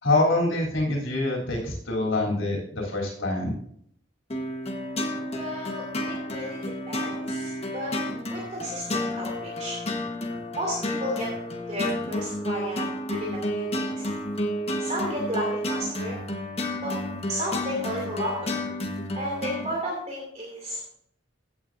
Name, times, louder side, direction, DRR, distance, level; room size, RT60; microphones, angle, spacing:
voice 1, 0.0-3.5, left 2 dB, 80° left, -2 dB, 3.2 m, -25 dB
sound 1, 4.3-19.7, left 1 dB, 35° left, 1.3 m, -31 dB
voice 2, 5.3-7.9 8.3-9.8 10.5-11.3 11.7-14.0 14.8-16.2 16.8-16.9 17.3-18.5 19.1-20.8, equal, 40° right, -2 dB, 2.7 m, -33 dB
15.0 x 8.7 x 2.6 m, 0.66 s
head